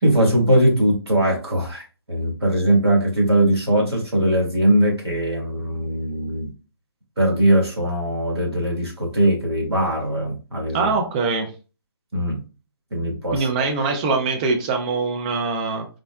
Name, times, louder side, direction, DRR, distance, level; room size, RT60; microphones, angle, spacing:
voice 1, 0.0-6.5 7.2-10.9 12.1-12.4 12.9-13.5, right 1 dB, 75° right, -1 dB, 1.5 m, -20 dB
voice 2, 10.7-11.5 13.3-15.9, right 4 dB, 20° right, 3 dB, 0.4 m, -23 dB
3.6 x 2.0 x 2.2 m, 0.33 s
figure-of-eight pair, 140°, 13 cm